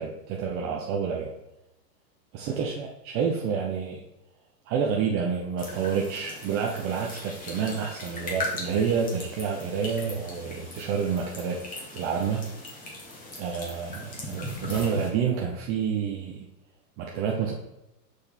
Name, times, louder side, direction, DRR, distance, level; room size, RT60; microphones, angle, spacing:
voice 1, 0.0-1.3 2.3-4.0 4.7-12.5 13.4-16.5 17.0-17.5, right 6 dB, 30° right, -1 dB, 0.7 m, -29 dB
sound 1, 5.6-15.1, left 2 dB, 15° left, 1.7 m, -39 dB
6.4 x 4.5 x 3.4 m, 0.93 s
hypercardioid pair, 110°, 49 cm